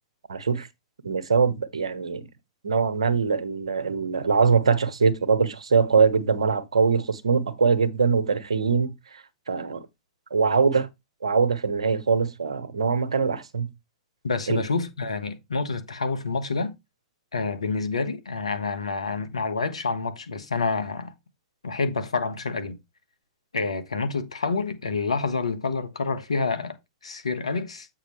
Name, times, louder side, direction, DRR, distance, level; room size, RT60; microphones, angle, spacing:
voice 1, 0.3-0.7 1.0-2.3 2.6-9.9 10.3-10.9 11.2-13.7 14.5-14.6, right 5 dB, 80° right, 1.1 m, -23 dB
voice 2, 14.2-16.7 17.3-21.1 21.6-22.8 23.5-26.8 27.0-27.9, left 4 dB, 85° left, 1.4 m, -28 dB
8.5 x 6.3 x 3.2 m
hypercardioid pair, 115°, 3 cm